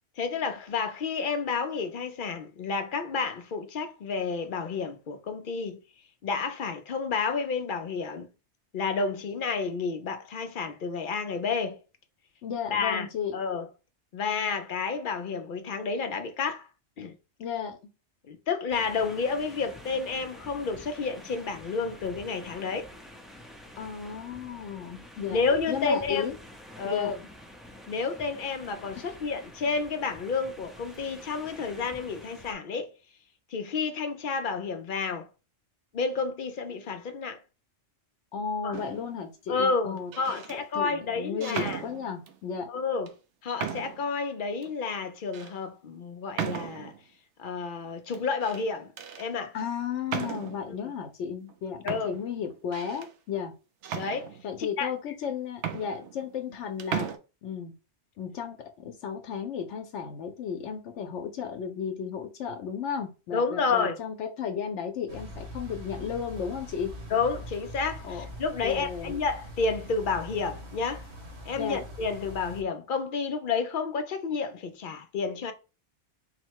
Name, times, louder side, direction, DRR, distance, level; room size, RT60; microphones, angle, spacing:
voice 1, 0.2-5.8 6.2-8.3 8.7-11.8 12.7-13.1 13.3-13.7 14.1-16.7 17.0-17.2 18.3-22.9 25.3-26.3 26.8-27.2 27.9-32.9 33.5-35.3 35.9-37.4 38.6-38.8 39.5-41.8 42.7-43.1 43.4-46.9 47.4-48.9 49.2-49.5 50.8-50.9 51.8-52.1 53.9-54.3 54.6-54.9 63.3-63.9 67.1-71.1 71.5-75.5, left 4 dB, 55° left, 0.6 m, -30 dB
voice 2, 12.4-13.4 17.4-17.8 23.8-25.4 25.7-26.4 26.8-27.1 38.3-42.7 49.5-53.5 54.4-57.1 57.4-57.7 58.2-66.9 68.0-68.3 68.6-69.1 71.5-71.8, left 7 dB, 85° left, 0.9 m, -34 dB
sound 1, 18.7-32.5, left 1 dB, ahead, 0.4 m, -48 dB
sound 2, 38.7-39.2 40.0-40.6 41.4-42.4 43.1-43.2 43.6-44.1 44.6-44.7 45.3-45.5 46.4-47.0 48.1-48.6 49.0-49.3 50.1-50.7 51.5-51.6 51.9-53.1 53.8-54.7 55.2-55.3 55.6-56.5 56.8-57.2, right 8 dB, 85° right, 0.9 m, -36 dB
sound 3, 65.1-72.6, equal, 70° right, 1.3 m, -43 dB
4.2 x 2.1 x 4.5 m
omnidirectional pair, 1.2 m